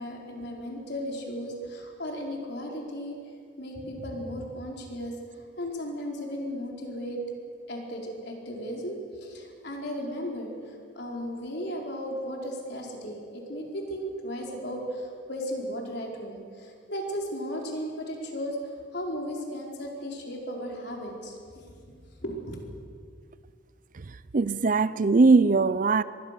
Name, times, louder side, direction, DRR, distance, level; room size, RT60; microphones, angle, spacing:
voice 1, 0.0-3.1 3.6-7.2 7.7-18.6 18.9-22.6, equal, 60° left, 4.6 m, -35 dB
voice 2, 24.3-26.0, right 3 dB, 45° right, 0.5 m, -20 dB
24.0 x 21.5 x 6.8 m
head